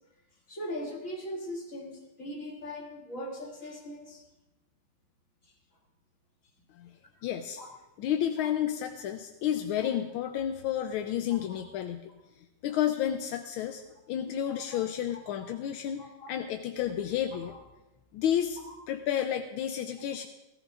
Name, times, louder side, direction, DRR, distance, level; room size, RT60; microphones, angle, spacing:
voice 1, 0.5-4.2 7.6-7.7 14.5-14.8 15.4-15.5 16.0-16.3, equal, 35° left, -3 dB, 2.6 m, -40 dB
voice 2, 7.2-7.6 8.0-12.0 12.6-13.8 14.1-17.5 18.1-18.6 18.9-20.3, left 10 dB, 80° left, 6 dB, 1.4 m, -31 dB
16.0 x 15.0 x 2.5 m, 1.0 s
omnidirectional pair, 2.4 m